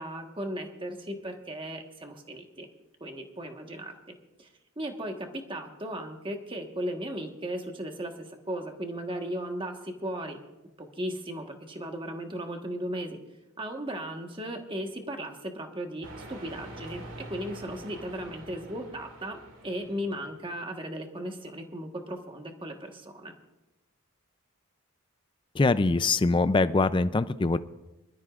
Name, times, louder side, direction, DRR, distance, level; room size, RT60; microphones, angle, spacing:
voice 1, 0.0-2.7 3.0-3.9 4.4-4.5 4.8-10.4 10.8-13.2 13.6-17.0 17.3-23.3, right 1 dB, 25° right, 3 dB, 1.3 m, -36 dB
sound 1, 16.0-20.6, right 1 dB, 60° right, 2.1 m, -46 dB
voice 2, 25.6-27.6, left 3 dB, 20° left, 14 dB, 0.4 m, -23 dB
25.5 x 13.0 x 2.5 m, 1.0 s
head